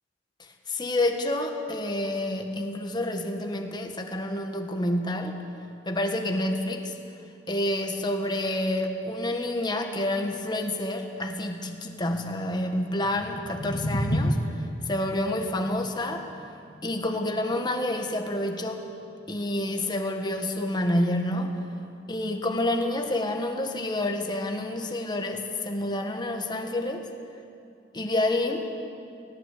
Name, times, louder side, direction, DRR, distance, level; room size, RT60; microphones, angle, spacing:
voice 1, 0.7-5.4 5.8-6.9 7.5-14.4 14.9-16.2 16.8-18.8 19.3-21.5 22.1-27.1 27.9-28.7, left 1 dB, 25° left, 4 dB, 1.5 m, -28 dB
sound 1, 13.0-19.1, equal, 60° left, 2.2 m, -32 dB
18.5 x 17.5 x 8.2 m, 2.5 s
head